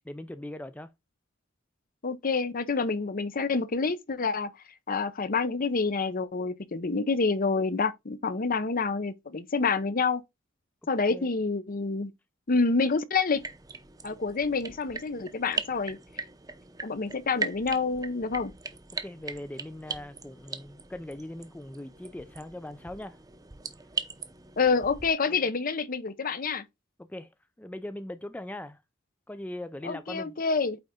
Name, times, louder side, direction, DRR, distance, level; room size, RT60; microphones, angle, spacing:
voice 1, 0.1-0.9 11.1-11.3 19.0-23.2 25.2-25.5 27.0-27.3 27.6-28.8 29.3-30.3, left 1 dB, 10° left, 0.4 m, -40 dB
voice 2, 2.0-4.5 4.9-10.2 10.9-12.1 12.5-13.4 14.0-16.0 16.8-18.5 24.6-26.6 29.8-30.8, left 4 dB, 45° left, 0.7 m, -27 dB
sound 1, 13.3-25.1, right 4 dB, 20° right, 0.8 m, -40 dB
8.9 x 3.9 x 3.7 m
head